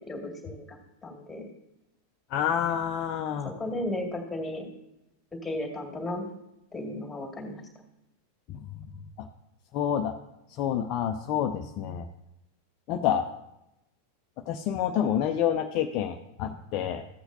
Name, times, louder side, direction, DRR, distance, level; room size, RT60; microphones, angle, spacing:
voice 1, 0.1-0.8 1.0-1.4 3.6-4.7 5.4-6.2 6.7-7.6, left 1 dB, 10° left, 0 dB, 2.2 m, -34 dB
voice 2, 2.3-3.5 8.5-8.6 9.7-10.2 10.6-12.0 12.9-13.3 14.5-17.0, left 9 dB, 40° left, 5 dB, 0.5 m, -28 dB
15.0 x 7.8 x 2.7 m, 0.89 s
figure-of-eight pair, 90°, 0 cm